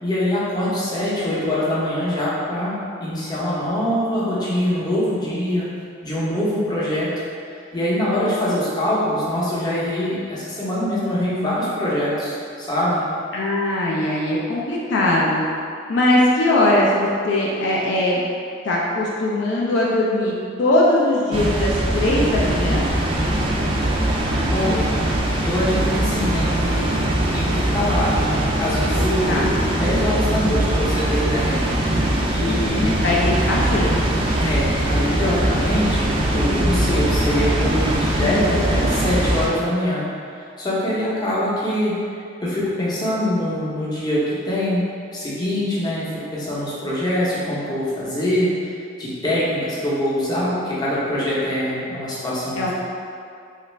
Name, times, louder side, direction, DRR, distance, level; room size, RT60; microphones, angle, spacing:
voice 1, 0.0-2.7 3.0-5.7 6.0-7.1 7.7-13.0 24.5-24.9 25.4-28.2 28.6-31.6 32.3-32.9 34.4-40.0 40.4-41.9 42.4-44.8 45.1-52.7, left 1 dB, 20° left, -8 dB, 0.7 m, -23 dB
voice 2, 13.3-15.4 15.9-18.2 18.6-20.3 20.6-22.8 29.2-29.5 32.5-33.9 38.1-38.6 52.6-52.7, left 1 dB, 65° left, -4 dB, 0.4 m, -20 dB
Water, 21.3-39.5, right 1 dB, 30° right, 0.3 m, -21 dB
3.0 x 2.4 x 3.1 m, 2.3 s
head